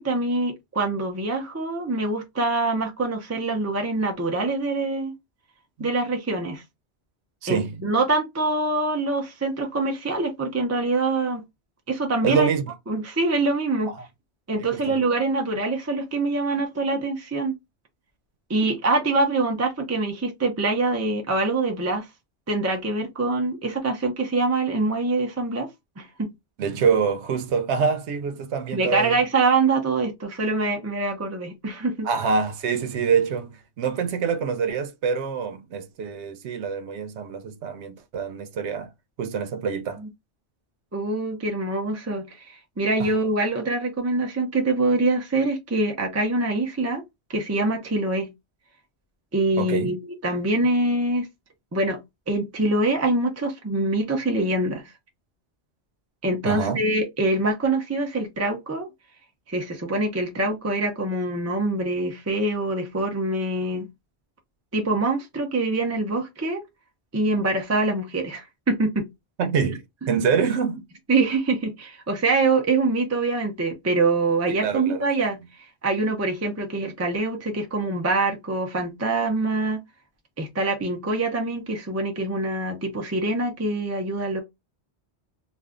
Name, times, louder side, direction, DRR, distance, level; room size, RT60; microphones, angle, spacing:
voice 1, 0.0-5.1 5.8-6.6 7.5-11.4 11.9-12.5 12.9-13.9 14.5-17.5 18.5-22.1 22.5-25.7 26.0-26.3 28.7-32.1 40.9-47.0 47.3-48.3 49.3-49.9 50.2-51.3 51.7-52.0 52.3-54.9 56.2-58.9 59.5-63.9 64.7-66.6 67.1-69.1 71.1-75.4 75.8-79.8 80.4-84.4, right 2 dB, 20° right, 0.5 m, -24 dB
voice 2, 7.4-7.9 12.2-12.7 13.9-14.1 14.6-15.0 26.6-29.2 32.0-38.9 39.2-40.0 43.0-43.1 49.6-49.9 56.4-56.8 69.4-70.8 74.6-75.1, right 6 dB, 90° right, 0.9 m, -26 dB
2.5 x 2.3 x 3.4 m
omnidirectional pair, 1.1 m